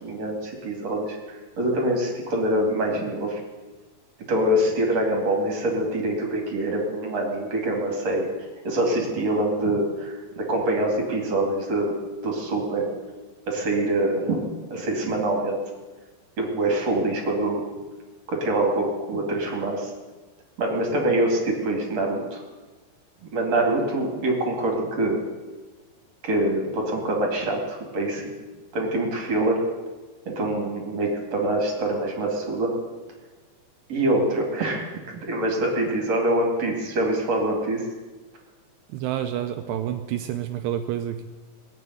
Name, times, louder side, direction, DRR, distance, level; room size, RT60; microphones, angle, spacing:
voice 1, 0.0-3.4 4.3-8.3 8.6-11.9 12.2-12.9 13.5-15.6 16.4-17.6 18.3-19.9 20.6-22.4 23.3-25.2 26.2-28.2 28.7-29.7 30.3-32.7 33.9-34.9 35.2-37.8, right 1 dB, 40° right, 0 dB, 3.0 m, -25 dB
voice 2, 38.9-41.2, right 11 dB, 80° right, 7 dB, 2.5 m, -29 dB
19.0 x 7.5 x 9.5 m, 1.3 s
omnidirectional pair, 5.3 m